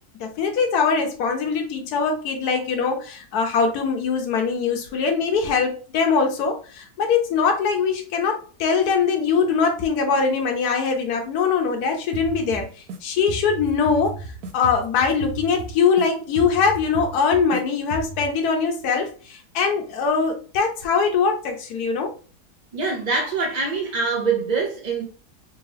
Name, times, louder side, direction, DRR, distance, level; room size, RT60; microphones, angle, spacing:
voice 1, 0.2-12.7 13.0-14.2 14.5-22.1, left 5 dB, 80° left, 1.2 m, -22 dB
sound 1, 12.1-13.0 13.3-16.1 16.4-17.6 17.9-18.3, right 3 dB, 75° right, 1.1 m, -34 dB
voice 2, 22.7-25.0, right 4 dB, 45° right, 0.5 m, -24 dB
3.5 x 2.9 x 3.3 m
omnidirectional pair, 1.6 m